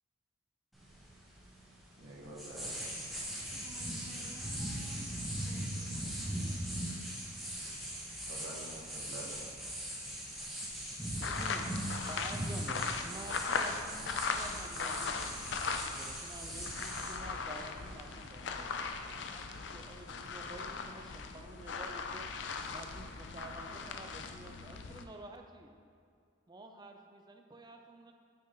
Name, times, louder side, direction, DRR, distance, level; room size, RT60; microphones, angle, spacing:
sound 1, 0.7-19.2, right 1 dB, ahead, 1.5 m, -41 dB
voice 1, 2.0-2.9 8.3-9.7, right 2 dB, 75° right, -6 dB, 1.6 m, -48 dB
voice 2, 3.5-6.5, right 1 dB, 30° left, -3 dB, 1.2 m, -56 dB
sound 2, 11.2-16.2 16.5-25.0, left 4 dB, 60° left, 0.5 m, -39 dB
voice 3, 11.2-22.2 22.7-25.7 26.5-28.1, right 2 dB, 20° right, 4 dB, 0.5 m, -50 dB
9.3 x 6.1 x 3.0 m, 2.4 s
head